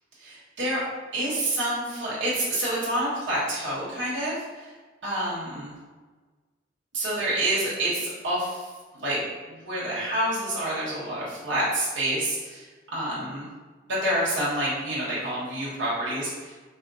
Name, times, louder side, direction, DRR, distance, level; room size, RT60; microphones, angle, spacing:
voice 1, 0.2-0.8 1.1-4.7 5.0-5.8 6.9-8.7 8.9-9.2 9.5-12.7 12.9-13.5 14.0-16.6, right 1 dB, 65° right, -8 dB, 1.1 m, -28 dB
4.2 x 2.0 x 3.9 m, 1.4 s
head